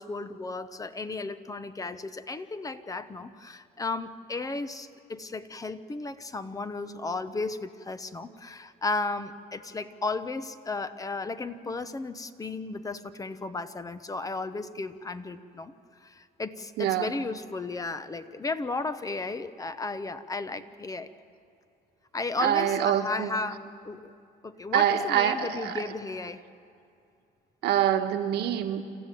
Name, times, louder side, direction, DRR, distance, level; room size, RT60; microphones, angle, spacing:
voice 1, 0.0-15.7 16.0-21.1 22.1-24.1 24.4-26.4, left 3 dB, 20° left, 12 dB, 0.9 m, -34 dB
voice 2, 16.8-17.1 22.4-23.3 24.7-25.8 27.6-28.8, right 10 dB, 80° right, 6 dB, 1.5 m, -25 dB
27.0 x 14.5 x 9.2 m, 2.5 s
cardioid pair, 110°, 17 cm